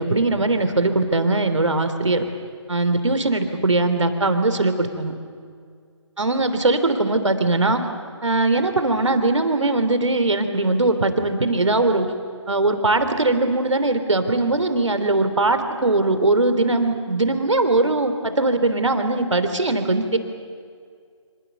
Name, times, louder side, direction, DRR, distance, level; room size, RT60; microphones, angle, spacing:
voice 1, 0.0-2.2 2.7-5.1 6.2-7.8 8.2-12.1 12.5-20.2, right 2 dB, 75° right, 8 dB, 3.0 m, -20 dB
26.5 x 26.0 x 6.9 m, 2.1 s
figure-of-eight pair, 150°, 16 cm